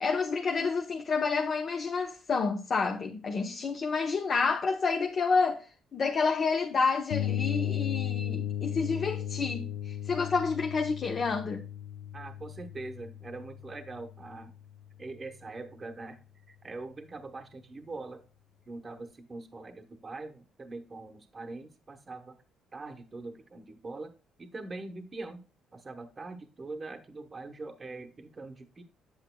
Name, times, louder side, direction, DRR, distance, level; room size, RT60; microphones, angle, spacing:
voice 1, 0.0-5.7 5.9-11.6, left 4 dB, 40° left, 0.8 m, -29 dB
sound 1, 7.1-14.8, left 10 dB, 85° left, 0.4 m, -35 dB
voice 2, 12.1-14.5 15.0-16.2 16.5-18.2 18.7-22.4 22.7-24.1 24.4-25.4 25.7-28.8, right 3 dB, 25° right, 0.9 m, -42 dB
8.3 x 8.1 x 2.2 m
cardioid pair, 115°, 0 cm